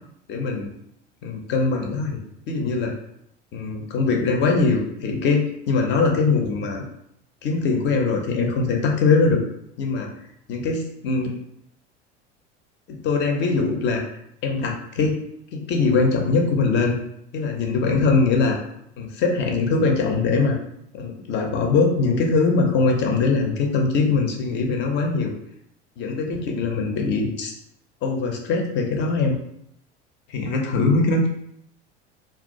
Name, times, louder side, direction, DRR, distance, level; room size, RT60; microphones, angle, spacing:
voice 1, 0.3-0.7 1.2-2.9 3.5-5.4 5.7-6.8 7.4-9.4 9.8-10.1 10.5-11.3 12.9-14.0 14.4-15.2 15.5-16.9 17.3-18.6 19.0-20.6 20.9-25.3 26.0-27.5 28.0-29.3 30.3-31.3, left 4 dB, 30° left, 2 dB, 0.4 m, -22 dB
2.2 x 2.2 x 2.6 m, 0.75 s
figure-of-eight pair, 75°, 36 cm